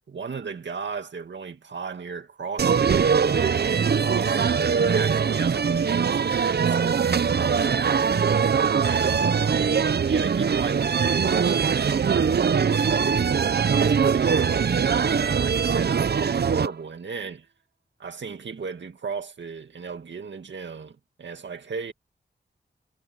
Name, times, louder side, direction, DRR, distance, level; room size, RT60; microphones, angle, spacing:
voice 1, 0.1-17.5 18.0-21.9, right 5 dB, 80° right, 2.2 m, -36 dB
sound 1, 2.6-16.7, right 6 dB, 60° right, 0.7 m, -22 dB
wide cardioid pair, 80°, 19 cm